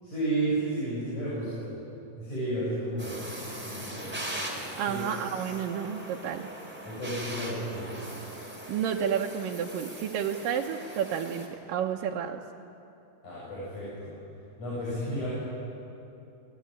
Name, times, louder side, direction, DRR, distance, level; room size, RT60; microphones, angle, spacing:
voice 1, 0.0-1.7 2.2-4.2 4.9-5.0 6.9-8.2 13.2-14.1 14.6-15.3, right 1 dB, 60° left, -8 dB, 8.7 m, -32 dB
sound 1, 3.0-11.5, right 1 dB, 5° right, 3.8 m, -40 dB
voice 2, 4.8-6.5 8.7-12.4, right 8 dB, 80° right, 0 dB, 2.7 m, -31 dB
29.0 x 20.5 x 9.6 m, 2.8 s
omnidirectional pair, 3.8 m